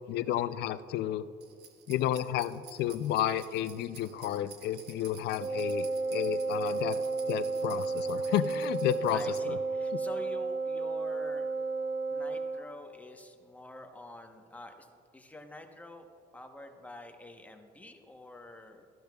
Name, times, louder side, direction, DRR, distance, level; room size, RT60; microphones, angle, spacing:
voice 1, 0.1-1.3 1.9-7.0 7.3-9.2 9.5-9.6 9.9-10.0, left 12 dB, 75° left, 14 dB, 0.4 m, -31 dB
sound 1, 1.4-9.4, right 7 dB, 75° right, 1.1 m, -53 dB
Wind instrument woodwind instrument, 5.4-12.7, right 3 dB, 60° right, 0.9 m, -32 dB
voice 2, 9.1-11.5 12.1-14.9 15.1-16.1 16.3-18.9, left 1 dB, 10° left, 4 dB, 1.0 m, -47 dB
14.0 x 11.5 x 2.3 m, 2.4 s
cardioid pair, 110°, 17 cm